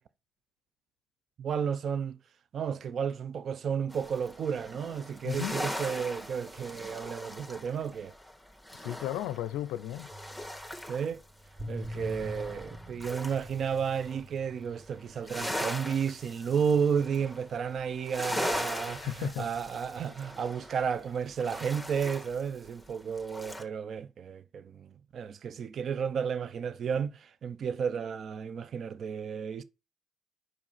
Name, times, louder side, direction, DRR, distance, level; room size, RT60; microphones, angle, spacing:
voice 1, 1.4-2.2 2.5-8.1 10.9-11.2 11.7-24.9 25.1-29.6, right 7 dB, 60° right, 0.6 m, -32 dB
sound 1, 3.9-11.2 11.5-14.2 14.6-23.6, left 1 dB, 5° right, 1.8 m, -40 dB
voice 2, 5.2-5.6 8.7-10.1 18.9-19.5, left 13 dB, 85° left, 0.4 m, -34 dB
sound 2, 10.1-18.0 18.5-21.2 22.0-22.2, equal, 25° right, 1.6 m, -47 dB
5.5 x 4.8 x 5.6 m
supercardioid pair, 55°, 0 cm